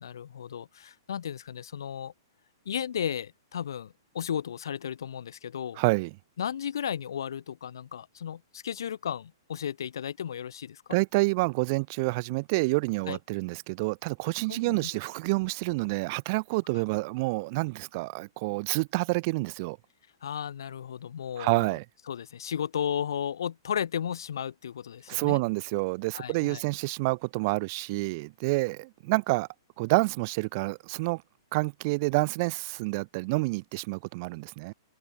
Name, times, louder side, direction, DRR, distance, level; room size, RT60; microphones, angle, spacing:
voice 1, 0.0-2.1 2.6-5.8 6.4-10.8 13.1-13.2 14.5-14.9 20.2-21.7 22.1-25.4 26.1-26.6, left 8 dB, 75° left, 3.2 m, -34 dB
voice 2, 5.8-6.1 10.9-19.8 21.4-21.8 25.1-29.5 29.8-31.2 31.5-34.7, right 26 dB, 45° right, 1.4 m, -28 dB
hypercardioid pair, 135°, 2 cm